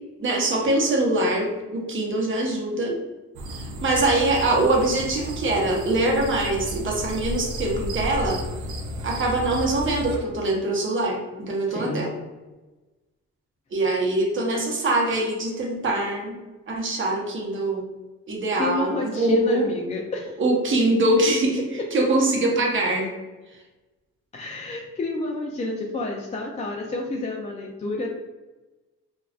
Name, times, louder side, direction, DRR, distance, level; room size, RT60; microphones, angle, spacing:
voice 1, 0.2-3.0 3.8-8.4 9.0-11.2 11.5-12.1 13.7-16.3 16.7-17.8 18.3-19.6 20.4-21.6 21.9-23.1, right 2 dB, 40° right, -1 dB, 0.9 m, -23 dB
sound 1, 3.3-10.2, equal, 75° right, 0.6 m, -33 dB
voice 2, 11.7-12.1 18.6-20.3 24.3-28.1, left 2 dB, 25° left, -1 dB, 0.4 m, -30 dB
3.5 x 2.3 x 2.4 m, 1.2 s
cardioid pair, 90°, 30 cm